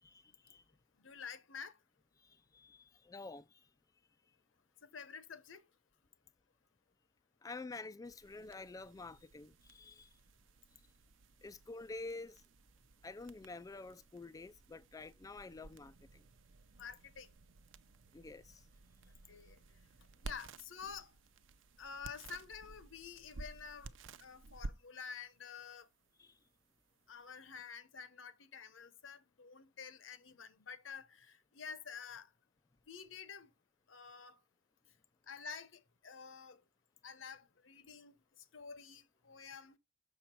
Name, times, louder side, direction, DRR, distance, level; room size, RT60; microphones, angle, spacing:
voice 1, 0.0-0.6 2.2-3.7 7.4-10.1 11.4-12.4 13.0-16.3 18.1-18.6 26.2-26.4, left 3 dB, 20° left, 0.3 m, -49 dB
voice 2, 1.0-1.8 4.8-5.6 16.7-17.3 19.3-19.6 20.2-21.1 21.8-23.9 24.2-25.9 27.1-32.3 32.9-33.5 33.9-34.4 35.3-36.6 37.0-39.8, left 6 dB, 90° left, 0.9 m, -49 dB
sound 1, 8.0-27.6, right 3 dB, 85° right, 0.6 m, -54 dB
7.1 x 5.9 x 4.4 m
head